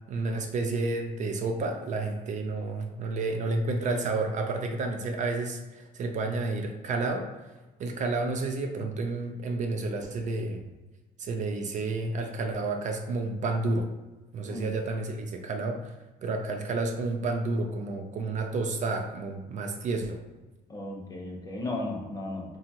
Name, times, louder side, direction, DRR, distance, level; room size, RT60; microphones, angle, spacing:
voice 1, 0.1-7.3 7.8-10.6 11.2-13.9 14.3-15.9 16.2-20.2, right 3 dB, 45° right, 4 dB, 0.4 m, -30 dB
voice 2, 20.7-22.6, left 2 dB, 20° left, -2 dB, 0.7 m, -35 dB
2.8 x 2.3 x 2.7 m, 1.1 s
cardioid pair, 110°, 17 cm